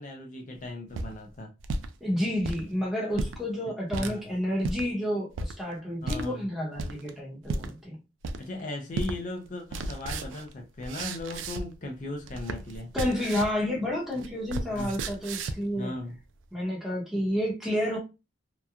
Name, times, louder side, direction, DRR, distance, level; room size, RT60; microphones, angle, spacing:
voice 1, 0.0-1.5 4.0-4.2 6.0-6.5 8.4-12.9 14.7-15.0 15.8-16.1, left 2 dB, 40° left, 0.4 m, -37 dB
sound 1, 0.7-1.9 2.3-2.6 3.1-3.4 3.9-4.1 4.6-4.8 5.4-5.5 6.1-6.3 6.8-7.1 7.5-7.7 8.2-8.6 9.0-9.2 9.5-11.8 12.1-13.6 13.9-15.7, right 2 dB, 85° right, 0.4 m, -34 dB
voice 2, 2.0-8.0 12.9-15.9 16.5-18.0, left 1 dB, ahead, 0.8 m, -30 dB
2.9 x 2.2 x 2.3 m
head